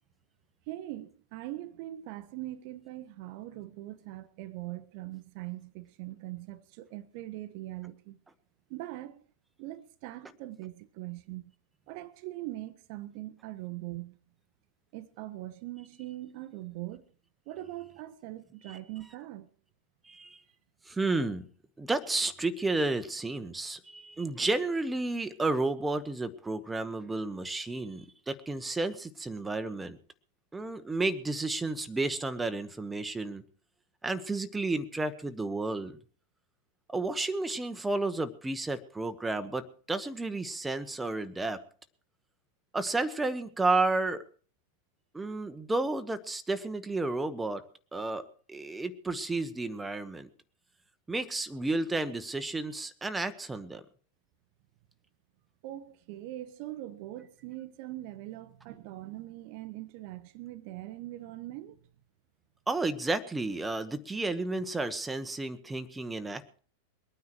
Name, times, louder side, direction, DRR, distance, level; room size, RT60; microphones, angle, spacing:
voice 1, 0.7-8.2 8.7-9.2 9.6-11.4 11.9-14.2 14.9-17.0 17.5-19.5 55.6-61.8, right 16 dB, 45° right, 0.8 m, -41 dB
voice 2, 20.0-20.4 20.9-21.4 21.8-30.0 30.5-33.4 34.0-36.0 36.9-41.6 42.7-44.2 45.1-47.6 47.9-48.2 48.5-50.3 51.1-53.8 62.7-66.6, right 2 dB, 10° right, 1.1 m, -32 dB
22.5 x 9.5 x 4.7 m
figure-of-eight pair, 90°, 0 cm